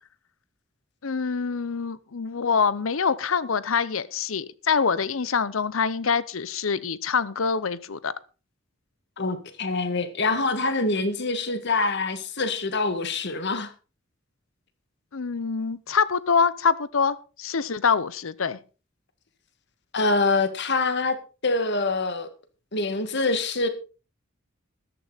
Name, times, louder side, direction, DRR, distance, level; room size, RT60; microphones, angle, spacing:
voice 1, 1.0-8.1 15.1-18.6, left 5 dB, 85° left, 0.8 m, -25 dB
voice 2, 9.2-13.7 19.9-21.2 21.4-22.3 22.7-23.7, left 3 dB, 60° left, 1.8 m, -25 dB
14.0 x 12.0 x 4.0 m
head